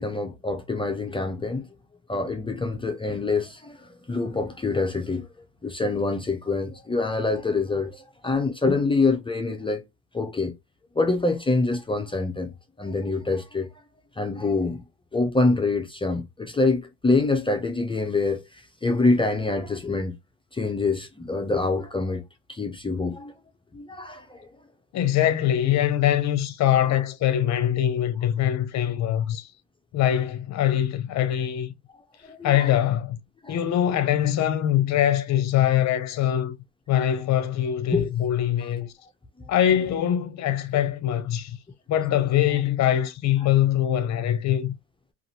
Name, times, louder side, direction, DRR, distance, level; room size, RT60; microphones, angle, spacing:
voice 1, 0.0-1.7 2.1-5.3 5.6-9.8 10.1-10.5 11.0-12.5 12.8-13.7 14.2-14.8 15.1-20.1 20.5-22.2 22.5-23.3 23.7-24.5 32.3-32.7 33.4-33.5 37.9-38.1, left 3 dB, 15° left, 0.6 m, -25 dB
voice 2, 24.9-29.5 29.9-31.7 32.4-33.2 33.5-36.5 36.9-38.9 39.5-41.6 41.9-44.7, left 11 dB, 55° left, 0.7 m, -23 dB
2.6 x 2.5 x 2.6 m
supercardioid pair, 85°, 34 cm